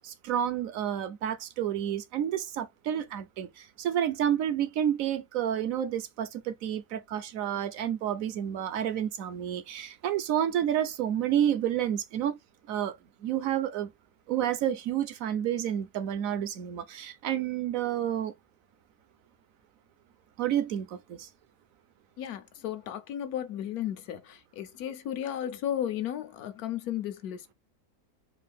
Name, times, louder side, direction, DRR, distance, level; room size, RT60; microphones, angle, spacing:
voice 1, 0.0-12.4 12.7-13.0 13.2-13.9 14.3-18.3 20.4-21.3, right 10 dB, 70° right, 0.9 m, -30 dB
voice 2, 22.2-27.5, left 10 dB, 75° left, 1.2 m, -34 dB
4.6 x 2.4 x 3.4 m
omnidirectional pair, 1.6 m